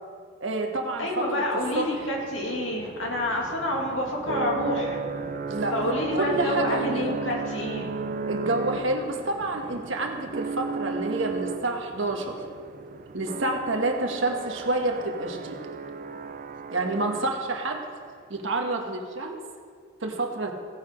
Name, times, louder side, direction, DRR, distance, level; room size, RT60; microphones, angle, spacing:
voice 1, 0.4-1.4 1.7-1.9 5.5-7.1 8.3-12.4 13.1-15.6 16.7-17.8 18.3-19.4 20.0-20.5, right 2 dB, 75° right, 3 dB, 1.3 m, -28 dB
voice 2, 1.0-5.0 5.7-7.9, left 1 dB, 75° left, -1 dB, 2.2 m, -28 dB
sound 1, 1.5-17.7, right 4 dB, 40° right, 0.4 m, -35 dB
17.0 x 5.8 x 5.1 m, 2.1 s
head